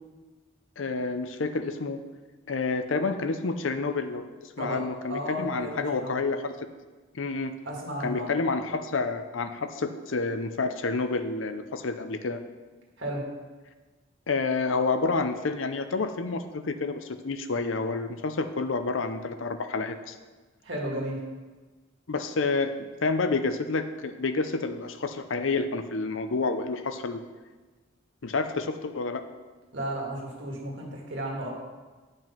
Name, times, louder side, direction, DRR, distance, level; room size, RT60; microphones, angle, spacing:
voice 1, 0.8-2.0 2.5-4.3 4.6-6.5 7.1-7.5 8.0-12.4 14.3-20.2 22.1-27.2 28.2-29.2, left 3 dB, 75° left, 9 dB, 0.6 m, -29 dB
voice 2, 4.6-6.2 7.6-8.3 13.0-13.3 20.6-21.2 29.7-31.5, equal, 65° right, -1 dB, 2.0 m, -33 dB
9.2 x 5.4 x 5.6 m, 1.3 s
head